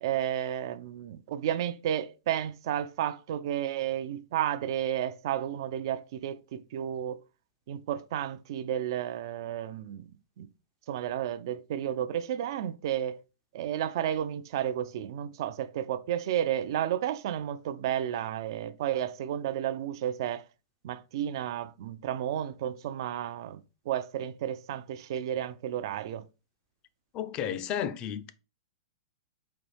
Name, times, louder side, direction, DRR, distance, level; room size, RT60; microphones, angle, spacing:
voice 1, 0.0-7.2 7.7-10.1 10.4-10.5 10.9-13.1 13.5-20.4 20.8-23.6 23.9-26.2, right 10 dB, 60° right, 0.3 m, -32 dB
voice 2, 27.1-28.3, left 9 dB, 35° left, 0.4 m, -32 dB
4.1 x 2.6 x 3.3 m
hypercardioid pair, 125°, 3 cm